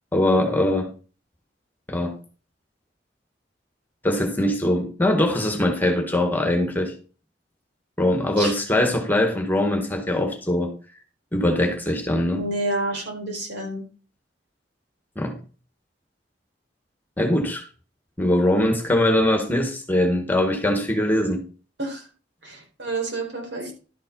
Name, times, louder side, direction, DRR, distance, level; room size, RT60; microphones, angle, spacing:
voice 1, 0.1-0.9 1.9-2.2 4.0-6.9 8.0-10.7 11.3-12.4 15.2-15.4 17.2-17.6 18.2-21.4, left 1 dB, 10° left, 1.7 m, -22 dB
voice 2, 12.3-13.8 21.8-22.0 22.4-23.7, right 2 dB, 80° right, 4.5 m, -29 dB
12.0 x 5.7 x 5.4 m
head